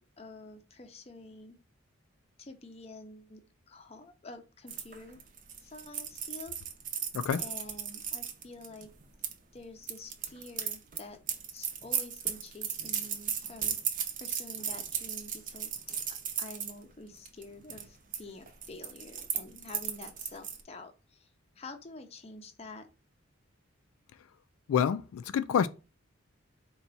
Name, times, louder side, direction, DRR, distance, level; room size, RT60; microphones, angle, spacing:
voice 1, 0.0-1.6 2.4-5.2 5.6-6.6 7.4-8.9 9.5-11.2 11.5-16.0 16.4-21.3 21.6-22.9, left 2 dB, 30° left, 0.5 m, -48 dB
sound 1, 4.7-9.3 9.8-16.7 17.2-17.4 17.7-18.2 18.5-20.6, right 8 dB, 40° right, 0.5 m, -36 dB
voice 2, 7.1-7.4 24.7-25.7, left 8 dB, 90° left, 0.3 m, -27 dB
4.1 x 2.3 x 4.0 m
head